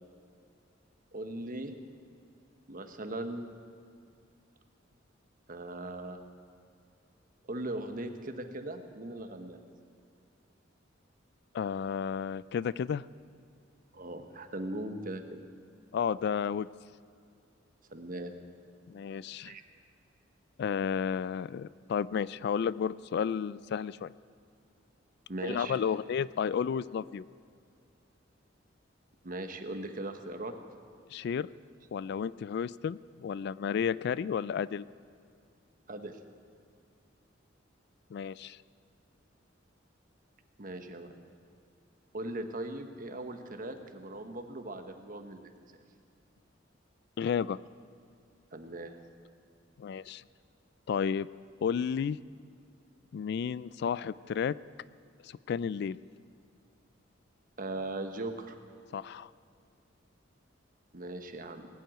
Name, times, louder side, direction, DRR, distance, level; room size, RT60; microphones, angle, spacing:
voice 1, 1.1-1.7 2.7-3.4 5.5-6.2 7.4-9.6 13.9-15.4 17.9-18.3 19.4-19.6 25.3-25.8 29.2-30.5 35.9-36.2 40.6-41.2 42.1-45.8 48.5-49.0 57.6-58.6 60.9-61.7, right 1 dB, 45° right, 6 dB, 1.2 m, -39 dB
voice 2, 11.5-13.1 15.9-16.7 18.9-19.5 20.6-24.1 25.4-27.2 31.1-31.5 31.9-34.8 38.1-38.6 47.2-47.6 49.8-50.2 50.9-51.3 51.6-52.2 53.1-54.5 55.2-56.0 58.9-59.3, left 7 dB, 60° left, 19 dB, 0.3 m, -32 dB
19.5 x 7.8 x 9.1 m, 2.4 s
head